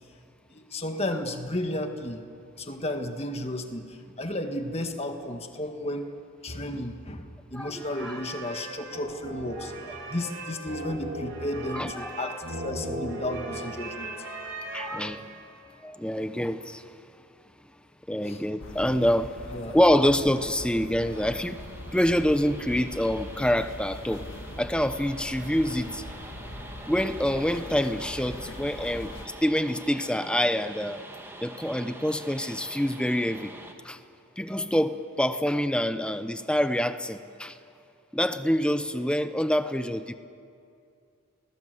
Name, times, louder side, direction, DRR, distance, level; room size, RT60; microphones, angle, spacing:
voice 1, 0.5-2.2 2.6-6.1 6.4-9.7 10.1-14.2 18.2-18.4 19.5-19.7, left 1 dB, 30° left, 5 dB, 1.7 m, -33 dB
voice 2, 7.5-8.2 9.6-9.7 11.7-12.2 14.7-15.3 15.8-16.8 18.1-19.3 19.7-21.7 21.9-24.2 24.6-26.0 26.9-31.0 31.4-33.5 33.8-34.0 34.4-37.6 38.1-40.1, equal, 5° left, 10 dB, 0.8 m, -26 dB
sound 1, 7.7-15.6, right 2 dB, 60° right, 4.1 m, -38 dB
sound 2, 18.6-29.3, left 1 dB, 60° left, 1.9 m, -41 dB
sound 3, 21.1-33.7, right 1 dB, 10° right, 1.8 m, -45 dB
30.0 x 20.5 x 7.9 m, 2.5 s
head